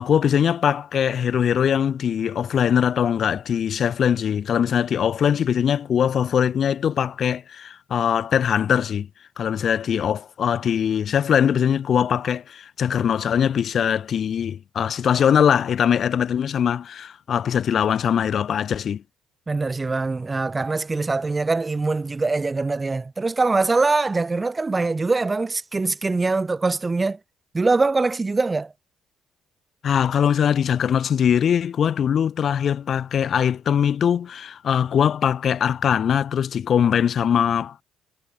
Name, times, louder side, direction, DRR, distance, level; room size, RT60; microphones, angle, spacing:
voice 1, 0.0-9.1 9.4-19.0 29.8-37.8, left 8 dB, 55° left, 1.0 m, -21 dB
voice 2, 19.5-27.2 27.5-28.7, right 3 dB, 25° right, 1.0 m, -23 dB
supercardioid pair, 70°, 0 cm